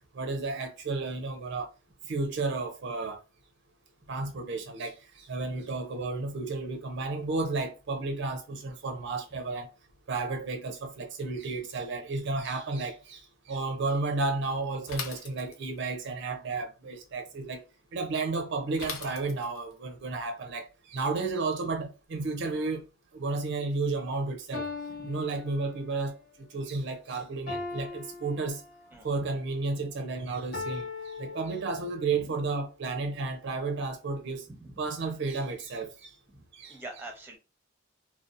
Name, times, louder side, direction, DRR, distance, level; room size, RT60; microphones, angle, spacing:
voice 1, 0.1-1.7 2.1-3.2 4.1-9.7 10.1-13.2 13.5-17.6 17.9-22.8 23.1-24.7 25.1-28.6 29.0-34.5 34.8-36.1 36.5-36.8, right 3 dB, 60° right, 0.4 m, -32 dB
Bicycle / Mechanisms, 14.9-15.9 18.8-19.7, left 6 dB, 90° left, 0.5 m, -40 dB
sound 1, 23.8-23.9 24.5-26.1 27.5-29.1 30.5-32.1, left 4 dB, 60° left, 1.2 m, -39 dB
voice 2, 28.9-29.2 32.1-32.3 34.5-34.7 36.3-37.4, right 2 dB, 10° right, 0.7 m, -46 dB
2.5 x 2.2 x 2.4 m
head